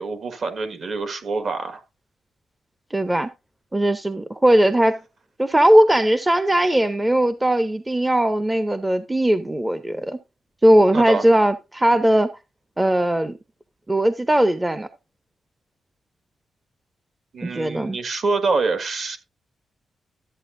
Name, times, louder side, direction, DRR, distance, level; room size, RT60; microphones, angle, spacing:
voice 1, 0.0-1.8 10.9-11.2 17.3-19.2, right 4 dB, 50° right, 1.7 m, -25 dB
voice 2, 2.9-3.3 3.7-5.0 5.4-10.2 10.6-12.3 12.8-13.4 13.9-14.9 17.4-18.0, right 1 dB, 10° right, 0.6 m, -19 dB
13.0 x 8.3 x 2.6 m
wide cardioid pair, 140°, 0 cm